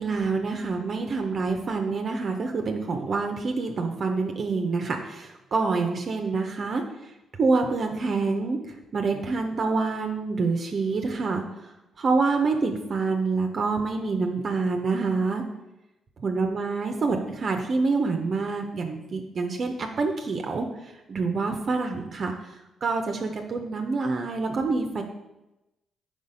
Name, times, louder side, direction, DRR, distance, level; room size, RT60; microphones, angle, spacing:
voice 1, 0.0-7.1 7.4-11.7 12.0-15.4 16.2-25.0, right 4 dB, 50° right, 3 dB, 0.6 m, -27 dB
5.0 x 4.0 x 5.1 m, 0.97 s
supercardioid pair, 50°, 0 cm